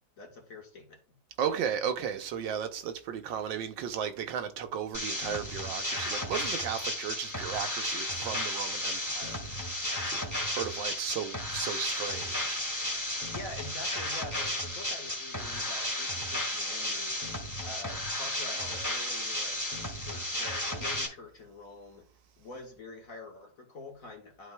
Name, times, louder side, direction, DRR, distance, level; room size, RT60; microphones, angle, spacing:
voice 1, 0.2-1.2 13.3-17.2 17.6-19.7 20.0-22.1 22.4-24.5, left 2 dB, 45° left, 1.8 m, -46 dB
voice 2, 1.4-9.7 10.0-12.6, right 8 dB, 80° right, 1.5 m, -35 dB
sound 1, 4.9-21.1, left 1 dB, 10° left, 1.5 m, -33 dB
11.5 x 4.8 x 2.2 m
omnidirectional pair, 2.1 m